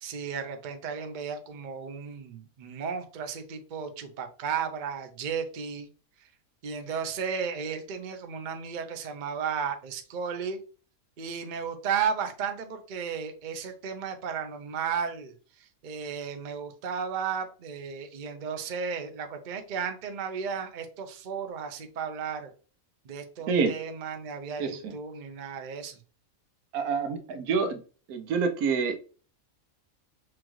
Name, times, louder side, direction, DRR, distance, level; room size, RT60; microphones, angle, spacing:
voice 1, 0.0-5.9 6.2-6.3 6.6-10.6 11.2-22.5 23.0-26.0, right 6 dB, 50° right, 7 dB, 0.6 m, -34 dB
voice 2, 24.6-24.9 26.7-27.8 28.1-29.0, right 5 dB, 90° right, 7 dB, 1.2 m, -27 dB
6.2 x 2.4 x 3.0 m, 0.38 s
omnidirectional pair, 1.5 m